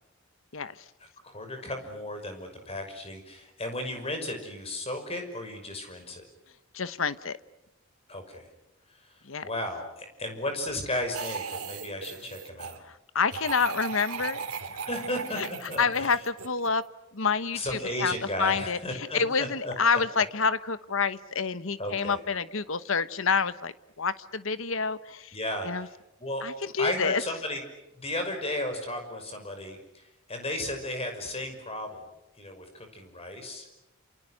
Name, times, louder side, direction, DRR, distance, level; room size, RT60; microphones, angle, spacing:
voice 1, 1.2-6.2 8.1-8.5 8.9-9.1 9.4-12.8 14.8-15.4 15.7-16.2 17.5-19.7 21.8-22.2 25.3-25.9 26.2-26.4 26.8-27.6 27.9-32.1 32.4-33.7, left 1 dB, 25° left, 5 dB, 5.9 m, -34 dB
voice 2, 6.7-7.4 9.2-9.5 12.8-14.4 15.4-15.5 15.8-16.8 17.1-18.1 18.4-25.4 25.6-25.9 26.4-27.2, left 5 dB, 60° left, 14 dB, 1.1 m, -28 dB
sound 1, 11.1-12.8 13.3-16.8, right 5 dB, 85° right, 2.8 m, -37 dB
28.5 x 28.0 x 6.5 m, 0.94 s
head